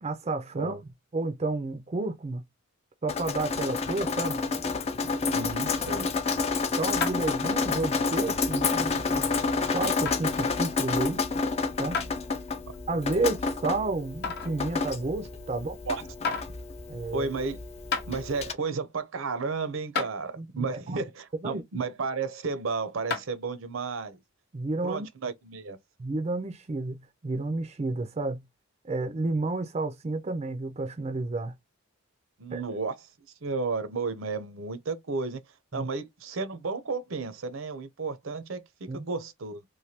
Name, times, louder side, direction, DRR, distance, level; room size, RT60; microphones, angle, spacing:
voice 1, 0.0-0.8 1.1-2.4 3.0-4.4 6.8-9.3 9.7-11.2 11.8-12.0 12.9-15.8 16.9-17.3 20.4-20.8 21.4-21.6 24.5-25.1 26.0-27.0 27.2-28.4 28.8-31.5 32.5-32.6 35.7-35.9 38.9-39.1, right 2 dB, 30° right, 0.4 m, -31 dB
Drip, 3.1-18.5, left 4 dB, 30° left, 0.4 m, -29 dB
voice 2, 5.3-6.1 15.5-16.0 17.1-17.6 18.1-24.2 24.8-25.8 32.4-33.0 33.4-35.4 35.7-39.6, right 4 dB, 70° right, 0.6 m, -33 dB
sound 1, 7.0-7.4 7.9-8.0 8.8-8.9 10.1-10.2 11.9-12.1 12.7-12.8 14.2-14.6 15.7-15.8 16.2-16.5 17.5-17.6 17.9-18.1 19.4-19.5 20.0-20.1 23.1-23.4, left 5 dB, 55° left, 0.8 m, -30 dB
3.2 x 2.2 x 2.7 m
head